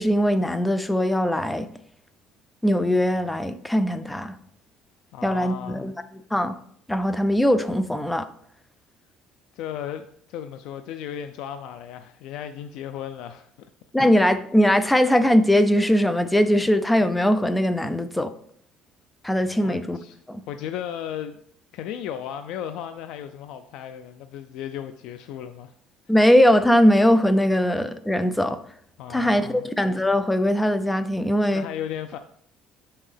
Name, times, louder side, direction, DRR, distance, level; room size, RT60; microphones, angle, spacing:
voice 1, 0.0-1.7 2.6-4.4 5.2-5.9 6.3-6.6 6.9-8.3 13.9-18.3 19.2-20.0 20.3-20.4 26.1-28.6 29.1-31.6, equal, 5° left, 12 dB, 0.4 m, -20 dB
voice 2, 5.1-5.9 9.5-13.7 19.6-20.2 20.5-21.4 21.7-25.7 29.0-29.7 31.5-32.2, left 9 dB, 70° left, 9 dB, 0.4 m, -35 dB
7.0 x 5.5 x 3.3 m, 0.65 s
cardioid pair, 145°, 0 cm